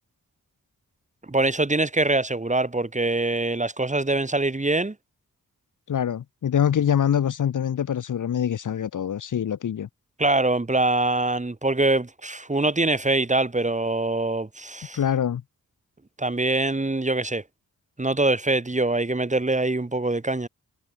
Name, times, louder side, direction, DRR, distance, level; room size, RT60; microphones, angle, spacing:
voice 1, 1.3-4.9 10.2-15.0 16.2-17.4 18.0-20.5, right 2 dB, 20° right, 1.4 m, -24 dB
voice 2, 5.9-9.9 14.9-15.4, left 9 dB, 60° left, 0.7 m, -24 dB
cardioid pair, 45°, 35 cm